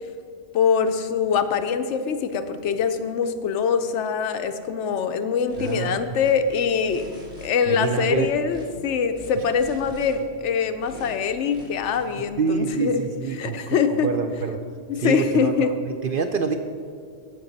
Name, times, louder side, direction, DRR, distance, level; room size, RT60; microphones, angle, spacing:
voice 1, 0.5-7.0 7.4-14.1 14.9-15.7, left 6 dB, 75° left, 9 dB, 0.9 m, -23 dB
sound 1, 5.5-5.8 6.1-7.5 7.8-8.7 9.1-10.1 10.8-11.1 11.5-12.0, left 2 dB, 5° right, 2.3 m, -43 dB
voice 2, 5.6-6.0 7.7-8.3 12.4-14.6 15.0-16.6, right 5 dB, 60° right, 7 dB, 0.6 m, -26 dB
15.5 x 5.4 x 4.0 m, 2.2 s
omnidirectional pair, 1.3 m